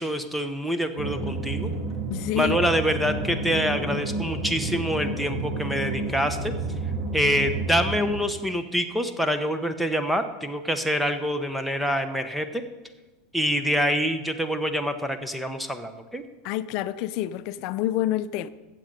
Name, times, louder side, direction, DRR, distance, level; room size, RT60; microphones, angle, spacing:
voice 1, 0.0-1.7 2.3-6.5 7.1-12.6 13.3-16.2, equal, ahead, 0.9 m, -26 dB
sound 1, 1.0-8.2, right 3 dB, 35° right, 2.2 m, -30 dB
voice 2, 2.1-2.6 16.4-18.5, left 13 dB, 55° left, 0.5 m, -27 dB
15.0 x 7.6 x 5.3 m
hypercardioid pair, 100°, 0 cm